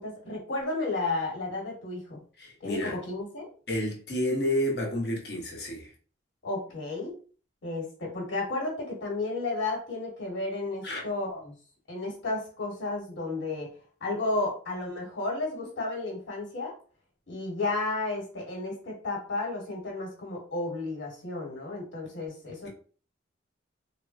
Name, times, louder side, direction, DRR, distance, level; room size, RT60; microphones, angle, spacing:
voice 1, 0.0-2.2 2.6-3.5 6.4-7.1 7.6-11.5 11.9-16.7 17.3-22.7, left 2 dB, 75° left, 1.4 m, -33 dB
voice 2, 2.4-3.0 3.7-5.9 10.8-11.0, left 1 dB, 55° left, 0.8 m, -30 dB
3.4 x 2.1 x 2.5 m
head